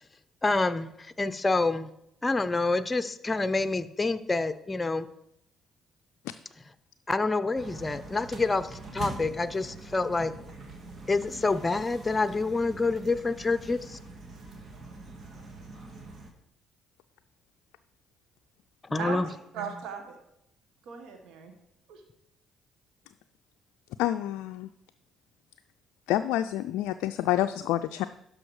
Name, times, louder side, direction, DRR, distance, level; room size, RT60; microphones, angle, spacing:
voice 1, 0.4-1.9 2.2-5.1 7.1-10.3 11.1-14.0 18.9-19.3, left 3 dB, 25° left, 12 dB, 0.7 m, -27 dB
sound 1, 7.6-16.3, right 3 dB, 45° right, 1.9 m, -44 dB
voice 2, 19.0-20.2 20.8-21.5 21.9-22.0, right 6 dB, 70° right, 5 dB, 1.2 m, -38 dB
voice 3, 24.0-24.7 26.1-28.1, left 13 dB, 75° left, 8 dB, 0.3 m, -28 dB
12.0 x 5.3 x 4.8 m, 0.79 s
hypercardioid pair, 50°, 0 cm